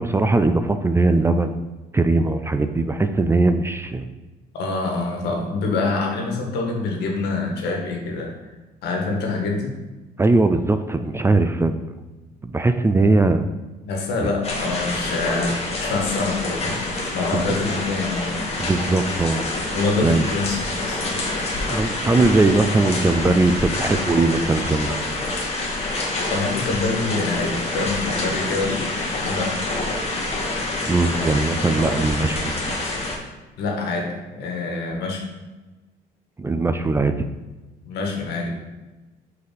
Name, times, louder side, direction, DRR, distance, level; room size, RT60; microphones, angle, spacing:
voice 1, 0.0-1.6 1.9-4.1 10.2-11.8 12.4-13.5 14.2-14.3 17.3-17.4 18.6-19.4 20.0-20.3 21.7-25.0 30.9-32.6 36.4-37.3, right 3 dB, 15° right, 9 dB, 0.4 m, -20 dB
voice 2, 4.5-8.3 8.8-9.7 13.8-18.5 19.7-21.2 26.3-28.9 29.2-29.6 33.6-35.2 37.8-38.5, left 3 dB, 80° left, 1 dB, 1.5 m, -25 dB
sound 1, 14.4-33.2, left 2 dB, 40° left, 1.4 m, -27 dB
5.3 x 4.1 x 5.2 m, 1.2 s
cardioid pair, 110°, 17 cm